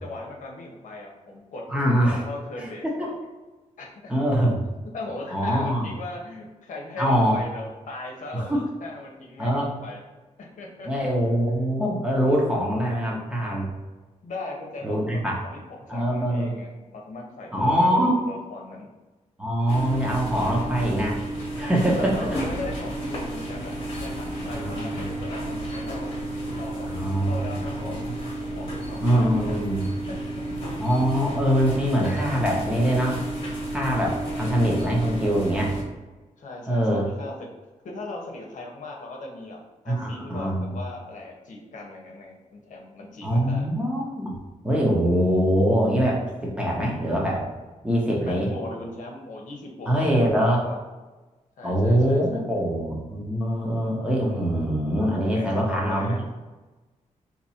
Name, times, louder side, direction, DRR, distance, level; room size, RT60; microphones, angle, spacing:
voice 1, 0.0-1.7 2.0-3.2 3.8-4.1 4.9-10.0 10.4-11.4 14.2-18.9 22.0-26.1 26.5-26.9 27.2-28.0 28.5-29.7 30.1-30.2 36.4-37.3 37.8-39.6 39.8-43.7 48.3-50.8 51.6-52.4 55.3-56.3, left 2 dB, 70° left, 0 dB, 0.8 m, -38 dB
voice 2, 1.7-2.2 2.6-2.7 3.0-3.1 4.1-4.6 5.3-5.9 7.0-7.4 8.5-8.6 9.4-9.7 10.8-13.7 14.8-15.3 15.9-16.5 17.5-18.1 19.4-21.2 21.6-22.1 24.5-25.1 26.8-27.9 29.0-29.9 30.8-33.2 33.7-35.8 36.7-37.0 39.9-40.8 43.2-46.2 46.6-47.5 47.8-48.5 49.9-50.6 51.6-56.1, equal, 10° right, -3 dB, 0.8 m, -23 dB
sound 1, 19.7-35.8, right 1 dB, 45° left, 1.1 m, -32 dB
2.9 x 2.6 x 4.1 m, 1.2 s
wide cardioid pair, 130°, 13 cm